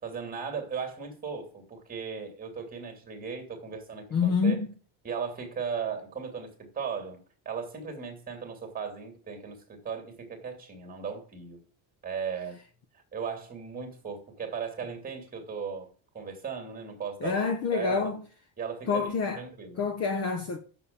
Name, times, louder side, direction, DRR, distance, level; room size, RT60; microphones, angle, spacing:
voice 1, 0.0-4.6 5.0-7.2 7.4-11.6 12.0-12.6 13.1-15.9 16.1-17.4 17.7-18.1 18.6-19.8, right 6 dB, 15° right, 2.7 m, -37 dB
voice 2, 4.1-4.7 17.2-18.2 18.9-19.4 19.8-20.6, left 5 dB, 30° left, 0.9 m, -27 dB
9.2 x 7.0 x 6.9 m
cardioid pair, 170°, 49 cm